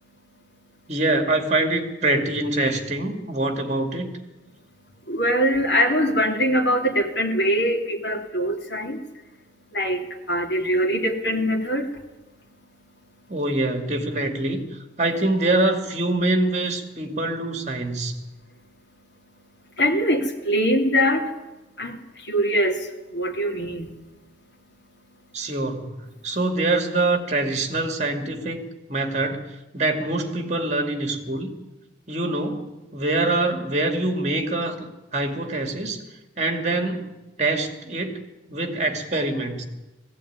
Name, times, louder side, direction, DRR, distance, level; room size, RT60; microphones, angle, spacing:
voice 1, 0.9-4.1 13.3-14.7 15.0-18.2 25.3-26.0 26.2-31.5 32.1-36.0 36.4-37.1 37.4-38.2 38.5-39.6, right 2 dB, 40° right, 6 dB, 2.5 m, -24 dB
voice 2, 5.1-9.0 9.7-11.9 19.8-21.3 21.8-23.9, equal, 80° left, 0 dB, 2.8 m, -23 dB
18.5 x 16.0 x 9.6 m, 1.1 s
head